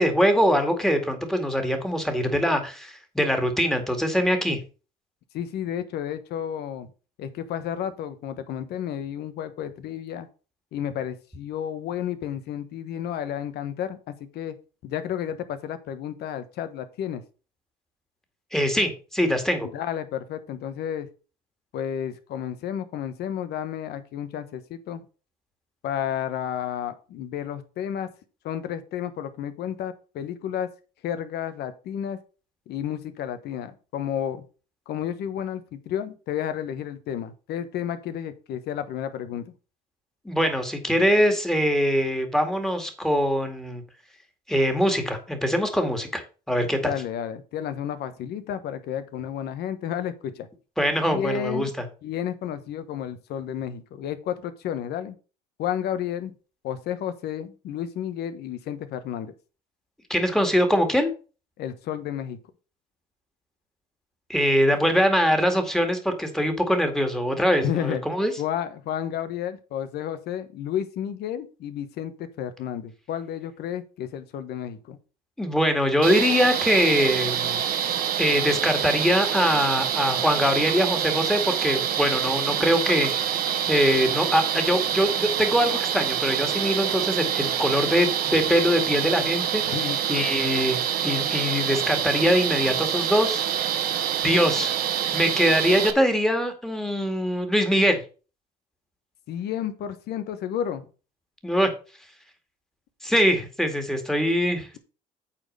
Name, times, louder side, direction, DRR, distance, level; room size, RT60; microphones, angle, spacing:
voice 1, 0.0-4.6 18.5-19.7 40.3-43.8 44.5-46.2 46.5-46.9 50.8-51.7 60.1-61.1 64.3-68.3 75.4-77.6 78.2-83.4 83.7-89.8 90.1-93.7 94.2-94.7 95.1-98.0 101.4-101.7 103.0-104.8, equal, 5° left, 5 dB, 2.1 m, -23 dB
voice 2, 5.3-6.9 7.2-10.3 10.7-14.6 14.8-17.2 19.6-21.1 21.7-25.0 25.8-28.1 28.4-30.7 31.0-32.2 32.7-34.4 34.9-39.5 46.8-50.5 51.1-51.7 52.0-55.1 55.6-56.3 56.6-59.3 61.6-62.4 67.6-68.0 68.4-75.0 89.6-90.0 99.3-100.8, left 9 dB, 75° left, 11 dB, 1.2 m, -31 dB
sound 1, 76.0-95.9, right 9 dB, 65° right, 1.2 m, -26 dB
8.8 x 4.3 x 6.6 m, 0.35 s
cardioid pair, 110°, 17 cm